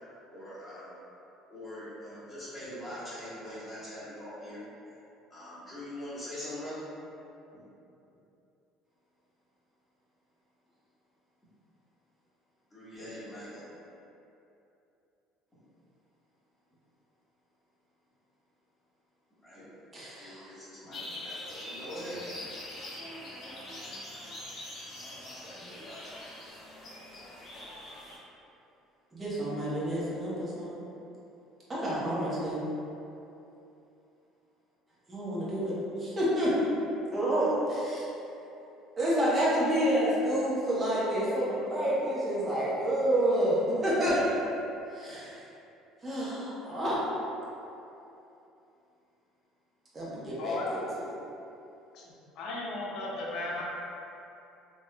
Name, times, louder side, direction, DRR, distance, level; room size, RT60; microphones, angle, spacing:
voice 1, 0.3-0.9 1.5-4.6 5.3-6.8 12.7-13.6 19.4-19.8 20.2-22.2 44.1-44.3, equal, 15° left, -12 dB, 1.3 m, -42 dB
voice 2, 19.9-20.5 29.1-30.7 31.7-32.6 35.1-36.5 37.1-38.0 39.0-44.1 44.9-45.4 46.0-47.0 49.9-51.1, equal, 25° right, -8 dB, 1.0 m, -29 dB
sound 1, 20.9-28.2, left 1 dB, 40° left, 1.5 m, -43 dB
voice 3, 50.4-50.8 51.9-52.0 52.4-53.6, left 2 dB, 70° left, -3 dB, 0.6 m, -35 dB
3.5 x 2.9 x 2.2 m, 2.8 s
cardioid pair, 110°, 0 cm